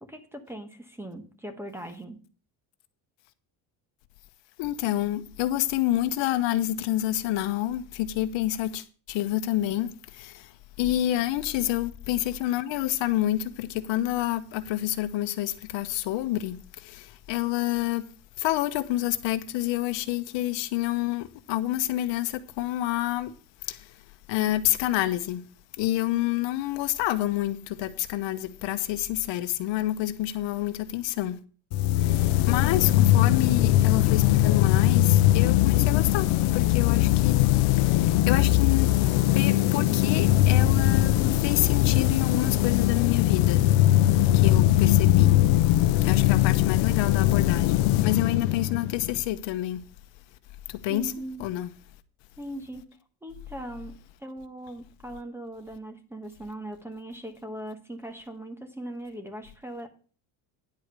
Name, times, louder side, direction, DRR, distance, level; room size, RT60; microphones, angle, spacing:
voice 1, 0.0-2.2 50.9-51.5 52.4-59.9, right 1 dB, 5° right, 1.2 m, -40 dB
voice 2, 4.6-10.5 10.8-18.0 18.4-23.3 23.6-23.9 24.3-25.4 25.8-31.4 32.0-37.3 37.8-38.9 39.3-43.7 44.3-45.3 46.0-49.8 50.7-51.1 51.4-51.7, left 14 dB, 70° left, 1.0 m, -28 dB
sound 1, 31.7-49.2, left 14 dB, 90° left, 0.7 m, -21 dB
10.5 x 4.9 x 6.7 m
cardioid pair, 145°, 45 cm